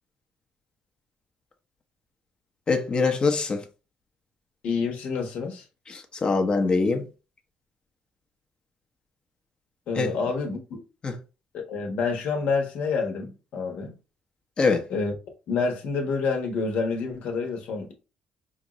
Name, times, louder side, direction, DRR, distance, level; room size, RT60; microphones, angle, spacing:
voice 1, 2.7-3.6 5.9-7.0 10.0-10.1 11.0-11.2 14.6-14.8, left 4 dB, 40° left, 0.9 m, -23 dB
voice 2, 4.6-5.6 9.9-10.8 11.5-13.9 14.9-15.1 15.5-17.9, left 4 dB, 70° left, 1.2 m, -28 dB
5.1 x 2.6 x 3.1 m
cardioid pair, 85°, 2 cm